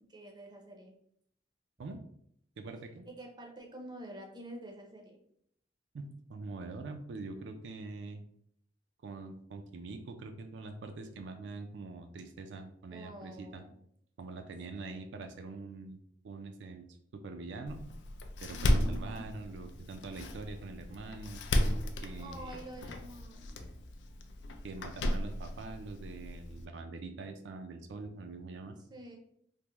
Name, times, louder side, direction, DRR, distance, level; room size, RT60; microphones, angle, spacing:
voice 1, 0.1-0.9 3.1-5.2 12.9-13.8 14.7-15.1 18.5-19.3 22.2-23.7 28.8-29.2, right 1 dB, 25° right, 1 dB, 0.5 m, -48 dB
voice 2, 2.6-3.1 5.9-8.2 9.0-13.6 14.2-16.0 16.2-16.9 17.1-17.9 18.4-21.4 22.0-22.6 24.6-28.8, right 3 dB, 80° right, 6 dB, 0.4 m, -44 dB
Door, 17.7-26.7, left 1 dB, 80° left, 0.4 m, -35 dB
3.5 x 2.0 x 2.9 m, 0.68 s
head